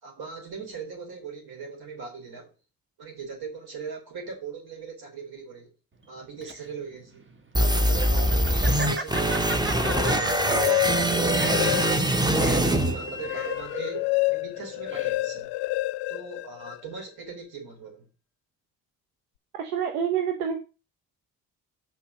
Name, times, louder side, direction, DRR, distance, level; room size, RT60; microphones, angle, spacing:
voice 1, 0.0-2.5 3.0-5.7 6.1-7.2 7.6-12.0 12.5-15.5 16.1-18.1, right 5 dB, 55° right, 4.2 m, -39 dB
Laughter, 6.0-15.4, right 3 dB, 25° right, 1.5 m, -37 dB
sound 1, 7.5-13.6, right 1 dB, 10° right, 1.1 m, -23 dB
sound 2, 9.7-12.3 12.7-17.0, left 21 dB, 65° left, 0.5 m, -29 dB
voice 2, 19.5-20.6, right 8 dB, 80° right, 1.0 m, -27 dB
6.1 x 5.7 x 6.5 m
hypercardioid pair, 45°, 45 cm